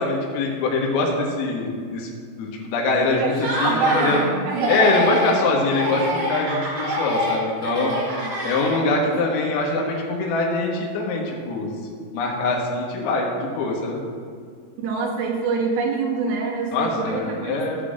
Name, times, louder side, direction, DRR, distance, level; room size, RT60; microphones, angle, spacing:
voice 1, 0.0-2.1 2.4-3.3 3.6-4.2 4.7-7.9 8.4-11.7 12.1-14.0 16.7-17.8, left 3 dB, 85° left, -1 dB, 4.0 m, -23 dB
Laughter, 3.3-4.3 4.5-5.4 5.7-9.0, equal, 50° right, 2.7 m, -26 dB
voice 2, 3.6-5.0 7.7-8.2 9.0-9.1 14.8-17.6, right 5 dB, 85° right, -2 dB, 3.9 m, -25 dB
15.0 x 8.2 x 2.5 m, 2.1 s
omnidirectional pair, 5.9 m